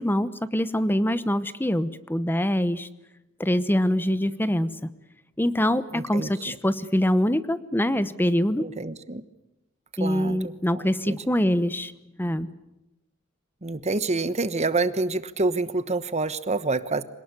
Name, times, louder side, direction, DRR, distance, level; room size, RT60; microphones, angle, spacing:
voice 1, 0.0-2.9 3.4-4.9 5.4-8.6 10.0-11.9 12.2-12.5, equal, 10° left, 14 dB, 1.0 m, -24 dB
voice 2, 5.9-6.6 8.6-9.2 10.0-11.2 13.6-17.0, right 3 dB, 35° right, 13 dB, 1.2 m, -28 dB
26.0 x 19.0 x 9.6 m, 0.94 s
head